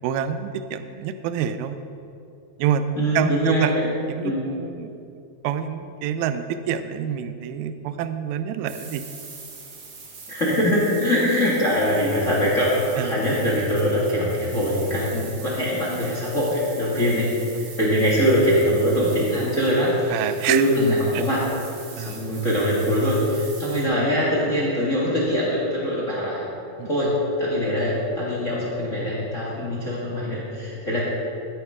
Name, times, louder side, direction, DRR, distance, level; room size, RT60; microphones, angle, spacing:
voice 1, 0.0-1.8 2.6-5.0 5.4-9.0 13.0-13.1 17.0-17.1 17.5-17.7 20.1-20.6 22.0-22.2 26.8-26.9 29.6-29.9, right 9 dB, 85° right, 10 dB, 2.4 m, -27 dB
voice 2, 2.9-3.9 4.2-4.5 10.3-17.3 17.6-21.5 21.9-26.5 26.8-31.0, equal, 45° left, -5 dB, 1.0 m, -22 dB
sound 1, 8.7-23.8, right 4 dB, 55° right, 1.6 m, -42 dB
15.5 x 10.0 x 3.6 m, 2.7 s
omnidirectional pair, 4.4 m